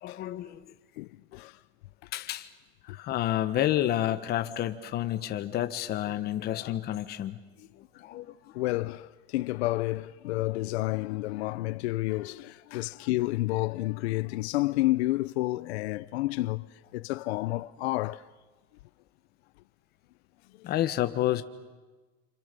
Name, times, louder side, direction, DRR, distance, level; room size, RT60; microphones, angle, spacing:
voice 1, 0.0-0.7 2.1-2.5 2.8-7.4 7.8-8.3 20.6-21.4, left 13 dB, 30° left, 1.4 m, -30 dB
voice 2, 1.0-1.6 2.9-3.0 7.6-7.7 8.1-18.3 20.5-20.7, left 18 dB, 85° left, 0.8 m, -30 dB
29.0 x 27.0 x 6.9 m
supercardioid pair, 165°, 32 cm